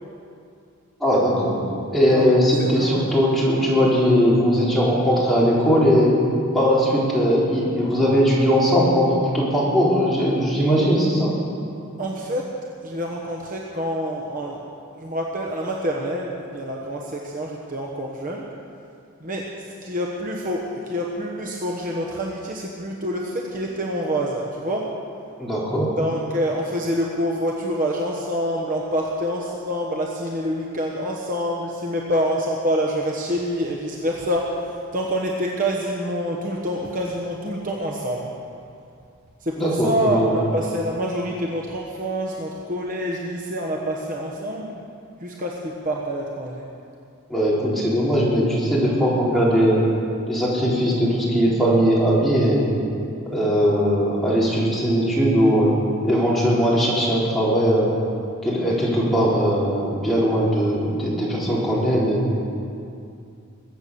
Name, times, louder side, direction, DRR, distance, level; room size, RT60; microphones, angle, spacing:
voice 1, 1.0-1.6 1.9-6.1 6.5-11.3 25.4-25.9 39.6-40.4 47.3-49.8 50.3-52.7 53.3-55.7 56.0-57.9 58.4-62.3, equal, ahead, -8 dB, 3.8 m, -19 dB
voice 2, 2.6-3.2 12.0-12.5 12.8-14.6 15.0-18.4 19.2-19.5 19.8-24.9 26.0-38.3 39.4-44.7 45.2-46.7, equal, 40° right, -1 dB, 1.2 m, -26 dB
22.0 x 8.2 x 7.0 m, 2.5 s
head